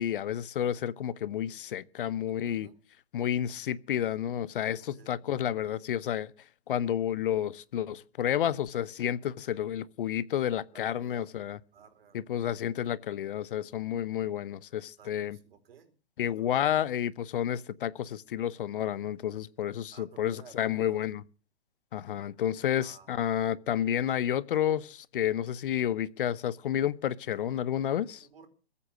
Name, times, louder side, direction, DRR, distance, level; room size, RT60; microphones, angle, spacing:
voice 1, 0.0-2.7 3.1-6.3 6.7-11.6 12.1-15.4 16.2-21.2 21.9-28.3, left 10 dB, 50° left, 0.9 m, -30 dB
voice 2, 2.3-2.8 5.0-5.2 9.0-9.1 10.7-11.3 11.7-12.2 15.0-15.9 16.2-16.7 19.9-21.0 22.7-23.1 28.2-28.5, right 7 dB, 60° right, 4.6 m, -54 dB
22.0 x 8.5 x 6.2 m
hypercardioid pair, 130°, 33 cm